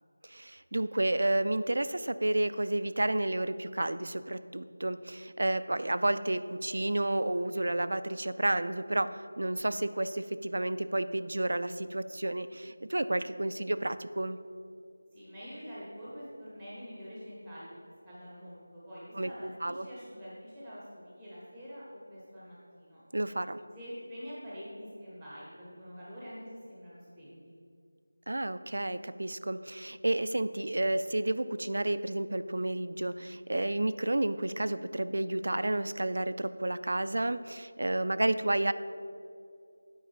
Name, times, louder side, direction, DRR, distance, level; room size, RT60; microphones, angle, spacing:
voice 1, 0.3-14.4 19.2-19.3 19.6-19.9 23.1-23.6 28.3-38.7, right 1 dB, 60° right, 13 dB, 0.3 m, -31 dB
voice 2, 15.1-17.8 18.0-23.0 23.7-27.5, equal, 5° left, -9 dB, 0.7 m, -46 dB
8.9 x 5.0 x 4.7 m, 2.4 s
figure-of-eight pair, 180°, 0 cm